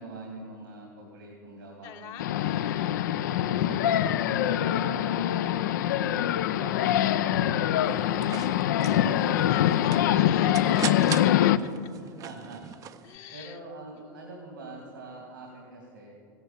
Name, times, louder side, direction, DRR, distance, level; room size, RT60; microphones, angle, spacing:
voice 1, 0.0-2.9 3.3-5.8 6.3-8.2 8.5-9.4 11.9-12.8 13.3-16.1, right 3 dB, 80° right, -1 dB, 2.7 m, -44 dB
voice 2, 1.8-3.0 3.5-4.0 5.3-6.0 8.7-11.5 11.8-11.9 13.0-13.6 13.9-14.2, left 9 dB, 50° left, 4 dB, 1.2 m, -44 dB
sound 1, 2.2-11.6, left 11 dB, 65° left, 0.5 m, -24 dB
sound 2, 7.9-13.1, right 9 dB, 30° right, 0.6 m, -39 dB
15.5 x 10.5 x 7.5 m, 2.3 s
figure-of-eight pair, 85°, 11 cm